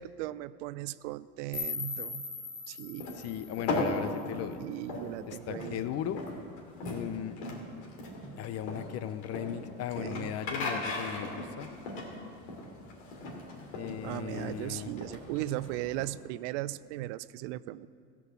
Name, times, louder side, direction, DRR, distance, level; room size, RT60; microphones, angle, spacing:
voice 1, 0.0-2.2 2.7-3.0 4.6-5.8 10.0-10.3 14.0-17.9, right 16 dB, 75° right, 17 dB, 0.5 m, -37 dB
sound 1, 1.5-4.5, left 4 dB, 5° left, 2.8 m, -40 dB
sound 2, 3.0-16.0, left 2 dB, 75° left, 2.8 m, -38 dB
voice 2, 3.2-4.6 5.3-6.2 6.8-7.3 8.4-11.7 13.7-14.9, left 10 dB, 45° left, 13 dB, 0.6 m, -37 dB
15.0 x 6.1 x 7.2 m, 2.3 s
supercardioid pair, 115°, 36 cm